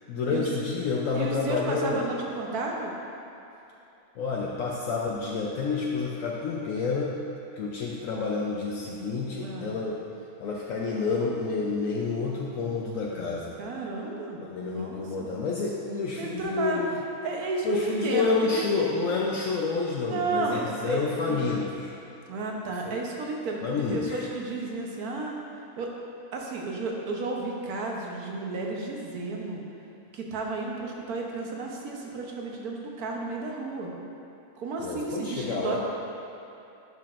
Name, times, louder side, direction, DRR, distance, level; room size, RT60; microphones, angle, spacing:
voice 1, 0.1-2.0 4.2-7.1 7.6-10.0 10.4-13.6 14.4-16.9 17.6-21.9 22.9-23.0 23.6-24.2 34.8-35.8, left 4 dB, 70° left, -3 dB, 1.0 m, -29 dB
voice 2, 1.1-2.9 9.4-9.7 13.6-15.3 16.2-16.8 17.2-18.7 20.0-21.5 22.3-25.3 25.8-25.9 26.3-29.6 30.1-33.9 34.6-35.8, right 3 dB, 85° right, -1 dB, 1.4 m, -32 dB
11.0 x 6.0 x 2.5 m, 2.9 s
omnidirectional pair, 1.6 m